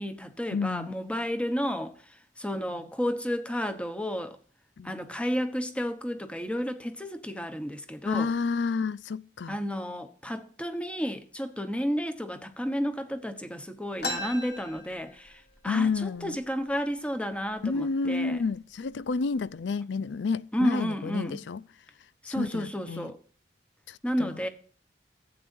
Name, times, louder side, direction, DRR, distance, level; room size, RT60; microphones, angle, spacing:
voice 1, 0.0-4.4 4.8-8.3 9.5-18.4 20.5-21.4 22.2-23.2 24.0-24.5, equal, 5° left, 1.1 m, -32 dB
voice 2, 0.5-0.9 4.8-4.9 8.1-9.6 15.7-16.4 17.6-21.6 22.3-23.1 23.9-24.3, left 4 dB, 85° left, 0.5 m, -30 dB
sound 1, 14.0-15.6 16.0-16.1 16.3-16.9 17.5-17.7 18.4-18.6 19.0-19.5, left 2 dB, 65° left, 2.1 m, -36 dB
15.0 x 8.6 x 2.6 m
head